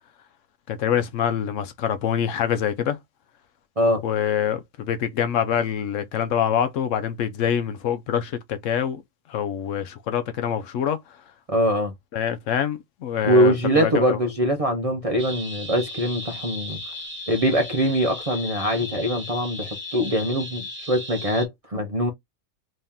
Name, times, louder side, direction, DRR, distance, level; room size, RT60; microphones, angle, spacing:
voice 1, 0.7-3.0 4.0-9.0 9.3-11.0 12.1-14.2, left 9 dB, 75° left, 0.9 m, -25 dB
voice 2, 11.5-11.9 13.2-16.8 17.3-22.1, equal, 35° right, 0.6 m, -23 dB
sound 1, 15.2-21.5, left 1 dB, 10° right, 1.2 m, -36 dB
3.1 x 2.8 x 3.5 m
omnidirectional pair, 1.4 m